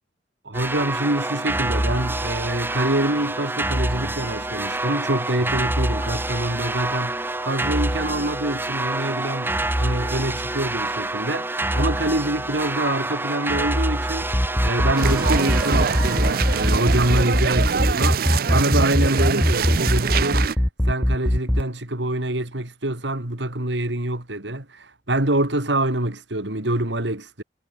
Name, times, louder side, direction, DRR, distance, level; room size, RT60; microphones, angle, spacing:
voice 1, 0.4-18.2 18.5-20.5 20.8-27.4, right 1 dB, 75° right, 3.2 m, -25 dB
sound 1, 0.5-17.4, right 1 dB, 10° right, 2.0 m, -27 dB
sound 2, 14.2-21.6, equal, 10° left, 0.9 m, -19 dB
sound 3, 15.0-20.6, right 6 dB, 55° right, 0.5 m, -24 dB
head